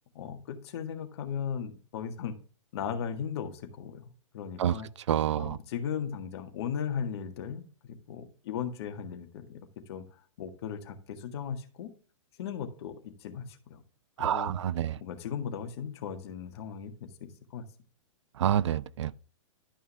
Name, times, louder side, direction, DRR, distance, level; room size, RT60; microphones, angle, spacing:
voice 1, 0.1-2.4 2.7-4.9 5.4-10.0 10.4-11.9 12.4-13.8 14.2-14.6 15.0-17.6, left 7 dB, 50° left, 1.6 m, -37 dB
voice 2, 5.1-5.6 14.2-15.0 18.4-19.1, right 10 dB, 60° right, 0.5 m, -27 dB
11.5 x 5.5 x 3.4 m
figure-of-eight pair, 110°, 17 cm